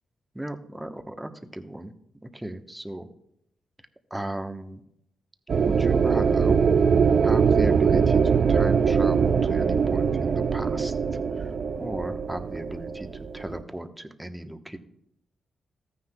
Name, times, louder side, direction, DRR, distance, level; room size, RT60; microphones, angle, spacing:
voice 1, 0.3-1.9 2.2-3.1 4.1-4.8 5.6-6.6 7.2-11.5 11.8-14.8, right 1 dB, 10° right, 6 dB, 1.0 m, -36 dB
Artillery Drone Aureoline, 5.5-13.6, right 6 dB, 60° right, 0.4 m, -22 dB
14.0 x 9.7 x 2.3 m, 0.77 s
cardioid pair, 60°, 0 cm